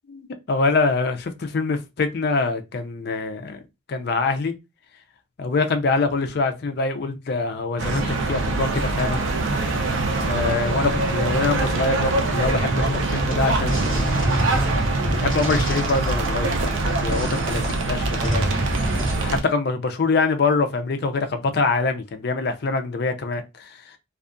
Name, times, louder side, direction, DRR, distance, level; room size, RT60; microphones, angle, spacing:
voice 1, 0.1-3.6 3.9-4.5 5.4-9.2 9.6-9.8 10.2-14.5 15.1-18.5 19.2-23.8, left 3 dB, 55° left, 0.4 m, -24 dB
sound 1, 7.8-19.4, right 2 dB, 75° right, 0.5 m, -24 dB
sound 2, 8.9-14.4, right 2 dB, 10° right, 0.4 m, -40 dB
sound 3, 12.5-19.1, right 1 dB, 30° right, 1.3 m, -29 dB
2.7 x 2.3 x 2.5 m
head